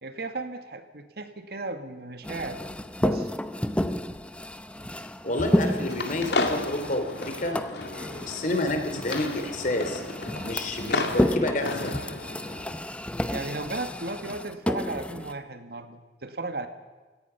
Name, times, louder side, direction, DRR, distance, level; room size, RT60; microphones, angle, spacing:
voice 1, 0.0-2.6 3.0-3.3 13.3-16.7, right 2 dB, 60° right, 8 dB, 1.8 m, -35 dB
sound 1, 2.2-15.3, equal, 5° left, 0.7 m, -31 dB
voice 2, 5.2-10.0 10.4-11.9, left 1 dB, 45° left, 6 dB, 3.1 m, -29 dB
sound 2, 5.6-12.7, left 2 dB, 70° left, 2.3 m, -33 dB
29.0 x 17.0 x 5.7 m, 1.3 s
head